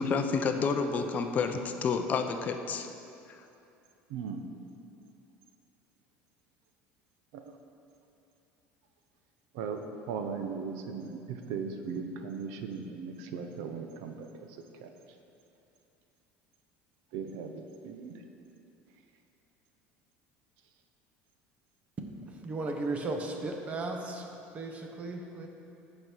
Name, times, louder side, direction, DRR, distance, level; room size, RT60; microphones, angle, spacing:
voice 1, 0.0-2.9, left 5 dB, 35° left, 6 dB, 0.5 m, -29 dB
voice 2, 4.1-4.4 7.3-7.5 9.5-14.5 14.8-14.9 17.1-18.2, right 5 dB, 80° right, 6 dB, 0.8 m, -38 dB
voice 3, 22.4-24.3 24.5-25.5, right 2 dB, 25° right, 3 dB, 1.0 m, -35 dB
14.5 x 5.3 x 4.5 m, 2.7 s
cardioid pair, 140°, 5 cm